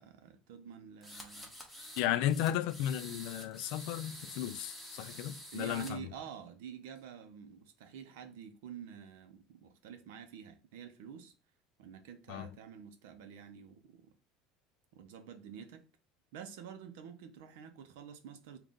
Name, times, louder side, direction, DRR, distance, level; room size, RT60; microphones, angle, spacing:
voice 1, 0.0-1.5 2.3-2.4 5.5-11.3 11.8-14.1 14.9-15.9 16.3-18.6, right 8 dB, 90° right, 0.6 m, -48 dB
sound 1, 1.0-2.0 2.3-5.9, equal, ahead, 0.6 m, -48 dB
voice 2, 2.0-6.0 12.3-12.5, left 12 dB, 55° left, 0.3 m, -34 dB
3.7 x 2.3 x 3.8 m
cardioid pair, 180°, 0 cm